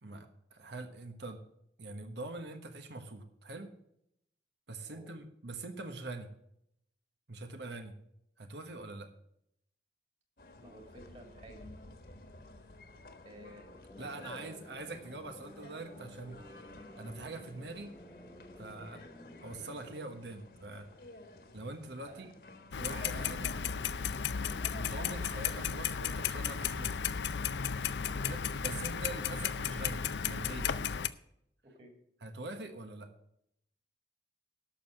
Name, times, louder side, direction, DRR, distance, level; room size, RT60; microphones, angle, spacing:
voice 1, 0.0-1.4 1.8-3.7 4.7-6.3 7.3-8.0 8.4-9.1 14.0-16.4 17.0-17.9 18.6-19.0 19.4-20.9 21.5-22.3 22.8-23.5 24.7-27.1 28.3-30.7 32.2-33.1, right 2 dB, 80° right, 7 dB, 1.2 m, -44 dB
voice 2, 4.8-5.1 5.5-5.6 10.6-11.7 13.2-13.7 14.0-14.6 18.6-18.8 22.1-22.3 23.1-23.3 24.4-24.7 28.1-28.3 31.6-31.9, right 1 dB, 40° right, 3 dB, 2.7 m, -55 dB
sound 1, 10.4-26.3, left 2 dB, 55° left, 1.5 m, -52 dB
sound 2, 13.4-21.0, left 1 dB, 15° left, 0.6 m, -55 dB
Clock, 22.7-31.1, left 7 dB, 80° left, 0.5 m, -34 dB
11.5 x 6.5 x 7.7 m, 0.76 s
head